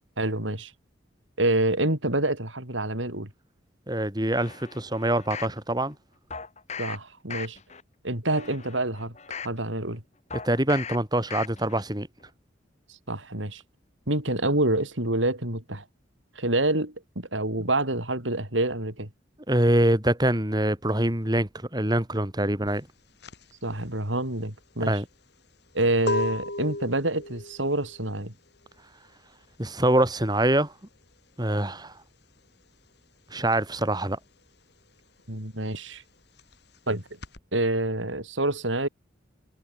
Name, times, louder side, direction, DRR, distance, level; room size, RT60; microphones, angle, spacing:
voice 1, 0.2-0.7 1.4-3.3 6.8-7.6 8.0-9.1 9.4-10.0 13.1-13.6 14.1-15.8 16.3-19.1 23.6-25.0 25.7-28.3 35.3-36.0 36.9-37.0 37.5-38.9, right 2 dB, 90° right, 6.5 m, -27 dB
voice 2, 3.9-5.9 10.4-12.1 19.5-22.9 24.8-25.0 29.6-30.7 31.4-31.9 33.3-34.2, right 1 dB, 20° right, 4.1 m, -24 dB
sound 1, 4.3-5.6 6.3-7.0 7.3-7.8 8.3-9.6 10.3-11.0 11.3-11.8 12.2-12.3, left 6 dB, 35° left, 4.1 m, -38 dB
sound 2, 22.7-32.9 33.2-37.4, left 2 dB, 60° left, 3.9 m, -36 dB
head